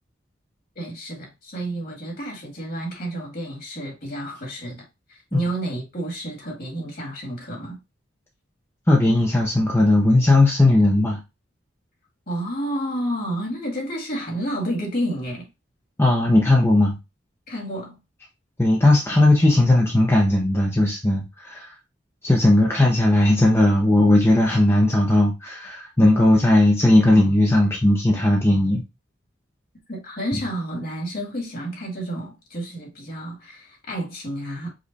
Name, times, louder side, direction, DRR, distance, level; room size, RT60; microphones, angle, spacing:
voice 1, 0.8-4.8 5.1-7.8 12.3-15.5 17.5-18.0 29.9-34.7, right 1 dB, 50° left, 1.9 m, -30 dB
voice 2, 8.9-11.2 16.0-17.0 18.6-21.8 22.2-28.8, left 1 dB, 15° left, 0.6 m, -17 dB
5.0 x 2.3 x 4.0 m
head